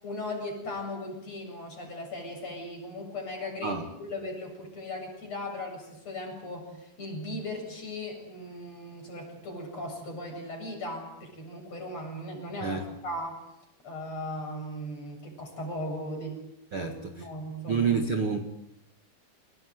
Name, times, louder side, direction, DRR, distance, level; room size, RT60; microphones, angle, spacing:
voice 1, 0.0-13.4 13.8-16.4 16.8-17.9, left 1 dB, 40° left, 2 dB, 8.6 m, -38 dB
voice 2, 16.7-17.1 17.7-18.4, right 5 dB, 40° right, 4 dB, 2.2 m, -28 dB
29.5 x 19.0 x 9.5 m, 0.83 s
omnidirectional pair, 4.6 m